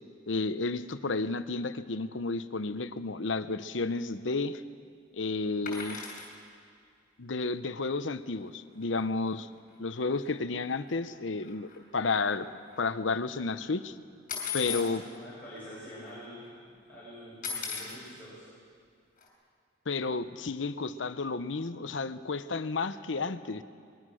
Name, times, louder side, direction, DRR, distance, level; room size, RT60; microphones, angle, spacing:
voice 1, 0.3-4.6 5.1-6.0 7.2-9.5 9.8-12.5 12.8-13.9 14.5-15.0 19.9-23.6, left 3 dB, 85° left, 12 dB, 0.9 m, -32 dB
sound 1, 5.7-6.3 8.5-8.6 8.8-9.0 9.3-9.4 10.2-10.3 10.7-12.9 14.3-14.9 15.7-15.8 16.0-16.5 17.4-18.0 19.2-19.3, left 6 dB, 45° left, 5.4 m, -37 dB
voice 2, 14.7-18.4, equal, 10° left, -12 dB, 7.7 m, -46 dB
23.5 x 22.0 x 6.3 m, 2.3 s
head